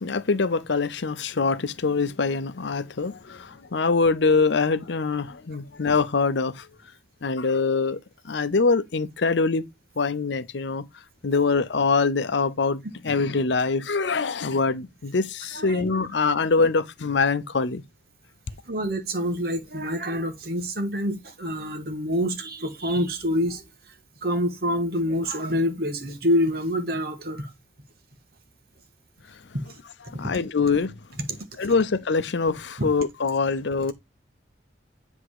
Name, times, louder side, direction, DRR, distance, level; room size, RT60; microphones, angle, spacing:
voice 1, 0.0-6.7 7.2-8.0 8.2-9.7 10.0-10.9 11.2-17.8 30.1-31.0 31.6-33.9, left 4 dB, 75° left, 0.7 m, -24 dB
voice 2, 18.6-23.9 24.2-27.5 29.6-29.8 30.0-30.3 32.8-32.9, equal, 55° right, 1.6 m, -27 dB
8.0 x 3.6 x 4.8 m
head